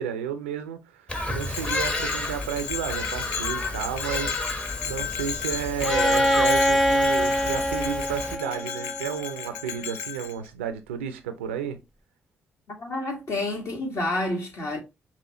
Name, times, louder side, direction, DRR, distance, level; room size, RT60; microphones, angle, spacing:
voice 1, 0.0-4.4 4.8-11.8, right 8 dB, 90° right, 0.4 m, -32 dB
Bird vocalization bird call bird song, 1.1-8.4, left 2 dB, 20° left, 1.0 m, -32 dB
Bell, 1.4-10.3, left 9 dB, 75° left, 0.4 m, -34 dB
Bowed string instrument, 5.8-9.6, equal, ahead, 0.5 m, -24 dB
voice 2, 12.8-14.8, left 2 dB, 50° left, 1.6 m, -29 dB
5.5 x 2.4 x 2.9 m
hypercardioid pair, 40°, 6 cm